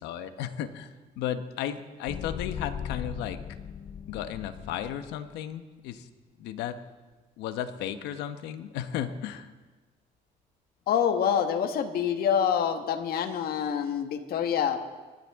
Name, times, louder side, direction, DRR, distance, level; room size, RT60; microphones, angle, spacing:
voice 1, 0.0-3.4 4.1-6.1 6.4-6.8 7.4-9.5, left 10 dB, 90° left, 10 dB, 1.0 m, -34 dB
sound 1, 2.1-5.2, left 8 dB, 45° left, 0.7 m, -38 dB
voice 2, 10.9-14.8, left 8 dB, 65° left, 7 dB, 1.5 m, -26 dB
25.0 x 12.5 x 3.6 m, 1.3 s
cardioid pair, 110°, 17 cm